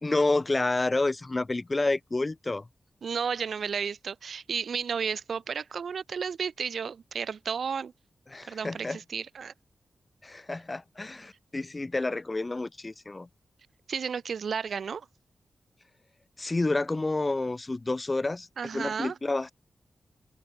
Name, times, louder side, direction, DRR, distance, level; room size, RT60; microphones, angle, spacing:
voice 1, 0.0-2.7 8.3-9.0 10.2-13.3 16.4-18.5 18.7-19.5, left 2 dB, 25° left, 1.6 m, -29 dB
voice 2, 3.0-7.9 8.5-9.5 13.9-15.1 18.6-19.2, right 6 dB, 75° right, 0.7 m, -32 dB
open air
wide cardioid pair, 115°, 0 cm